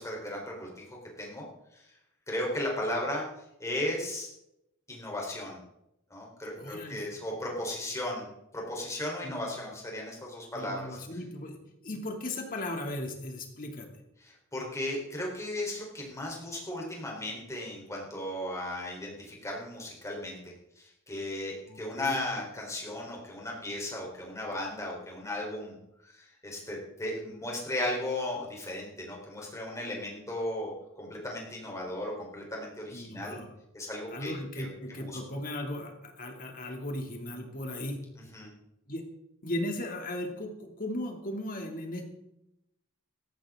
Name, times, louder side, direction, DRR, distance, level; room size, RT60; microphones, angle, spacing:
voice 1, 0.0-1.4 1.7-1.9 2.3-3.2 3.6-4.3 4.9-5.6 6.1-8.3 8.5-11.0 14.2-25.8 26.0-33.4 33.7-35.2 38.2-38.5, left 1 dB, 15° left, -2 dB, 4.0 m, -36 dB
voice 2, 6.6-7.0 9.2-9.5 10.5-11.6 11.8-13.9 21.7-22.2 32.9-33.5 34.1-38.0 38.9-39.0 39.4-42.0, left 1 dB, 40° left, 3 dB, 2.7 m, -37 dB
17.0 x 14.5 x 3.8 m, 0.84 s
head